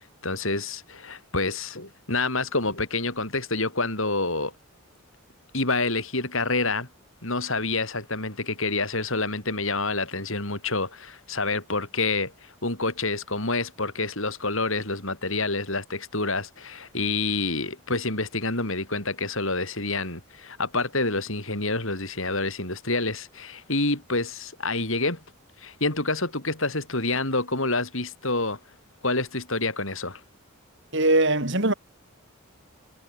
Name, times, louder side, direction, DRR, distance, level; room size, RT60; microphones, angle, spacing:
voice 1, 0.0-4.5 5.5-6.9 7.2-25.2 25.6-28.6 29.0-30.2, left 3 dB, 65° left, 7.2 m, -28 dB
voice 2, 30.9-31.7, right 2 dB, 55° right, 6.7 m, -21 dB
head